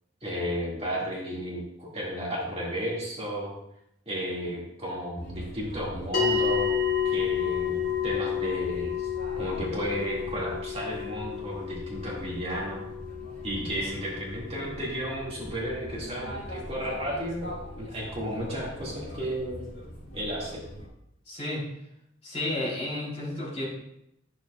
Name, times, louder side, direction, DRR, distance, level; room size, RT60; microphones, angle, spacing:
voice 1, 0.2-3.5 4.1-6.7 7.0-9.1 9.4-12.9 13.4-19.6 20.1-20.6, equal, 30° right, -5 dB, 1.9 m, -33 dB
sound 1, 5.2-20.9, equal, 65° left, 2.8 m, -42 dB
sound 2, 6.1-16.7, left 7 dB, 50° left, 1.3 m, -31 dB
voice 2, 21.2-21.7 22.2-23.6, left 1 dB, 30° left, -7 dB, 3.1 m, -32 dB
10.0 x 6.6 x 2.3 m, 0.80 s
head